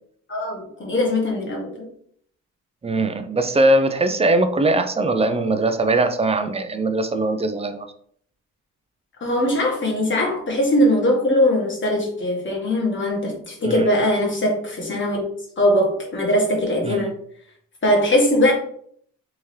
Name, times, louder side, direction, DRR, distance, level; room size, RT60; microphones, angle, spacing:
voice 1, 0.3-1.9 9.2-15.3 15.6-17.1 17.8-18.5, left 1 dB, 40° left, -1 dB, 1.4 m, -20 dB
voice 2, 2.8-7.9 13.6-13.9 16.8-17.1, right 2 dB, 20° right, 9 dB, 0.4 m, -20 dB
3.5 x 2.8 x 3.2 m, 0.62 s
cardioid pair, 90°, 30 cm